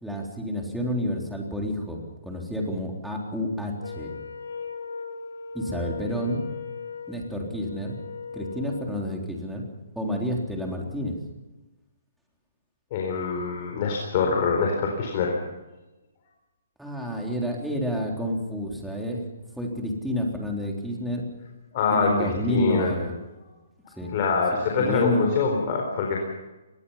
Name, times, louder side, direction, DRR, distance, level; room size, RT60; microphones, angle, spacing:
voice 1, 0.0-4.1 5.5-6.4 7.1-8.0 8.3-9.6 10.0-11.2 16.8-19.2 19.6-21.2 21.9-23.2 24.0-24.1 24.5-25.4, equal, ahead, -1 dB, 3.7 m, -29 dB
Wind instrument woodwind instrument, 3.8-9.0, left 5 dB, 85° left, 5.6 m, -38 dB
voice 2, 12.9-15.3 21.7-22.9 24.1-26.2, left 5 dB, 35° left, 1 dB, 4.2 m, -24 dB
24.0 x 20.5 x 5.8 m, 1.1 s
hypercardioid pair, 160°, 0 cm